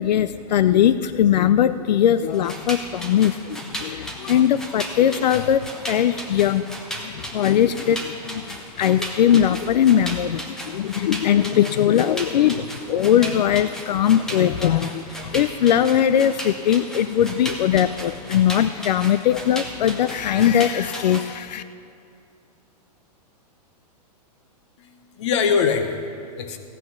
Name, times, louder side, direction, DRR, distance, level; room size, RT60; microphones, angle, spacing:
voice 1, 0.0-6.7 7.0-21.6, left 10 dB, 90° left, 13 dB, 0.4 m, -20 dB
sound 1, 2.3-21.3, equal, 5° left, 0.5 m, -35 dB
voice 2, 24.8-26.6, left 6 dB, 45° left, 8 dB, 1.0 m, -23 dB
15.5 x 9.0 x 5.7 m, 2.5 s
hypercardioid pair, 170°, 21 cm